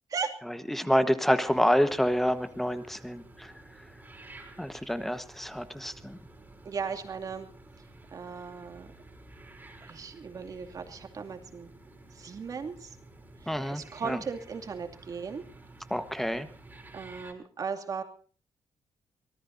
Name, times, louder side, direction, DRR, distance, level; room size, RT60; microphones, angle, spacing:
voice 1, 0.7-3.5 4.6-6.2 13.5-14.2 15.9-16.5, equal, 5° left, 11 dB, 1.3 m, -28 dB
sound 1, 1.4-17.3, right 2 dB, 20° right, 4.6 m, -52 dB
voice 2, 6.6-7.5 8.1-8.9 9.8-11.7 12.1-13.0 13.4-15.4 16.9-18.0, right 5 dB, 45° right, 6 dB, 2.5 m, -37 dB
25.0 x 19.0 x 2.7 m, 0.41 s
wide cardioid pair, 165°, 9 cm